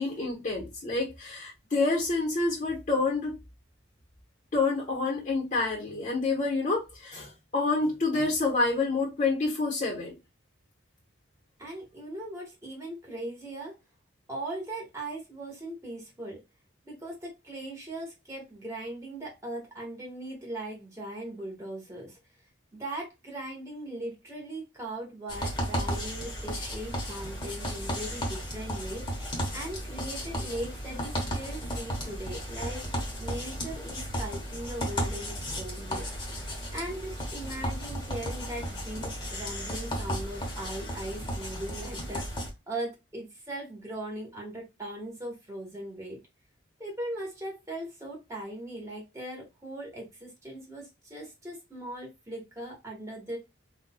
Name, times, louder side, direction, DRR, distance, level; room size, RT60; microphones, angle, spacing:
voice 1, 0.0-3.3 4.5-10.1, left 3 dB, 40° left, 1.1 m, -28 dB
voice 2, 11.6-13.7 14.3-16.4 16.8-22.2 22.8-32.8 33.2-36.5 36.7-46.2 46.8-53.4, right 1 dB, 15° right, 1.4 m, -39 dB
sound 1, 25.3-42.5, equal, 25° left, 1.0 m, -34 dB
4.0 x 2.5 x 2.3 m
head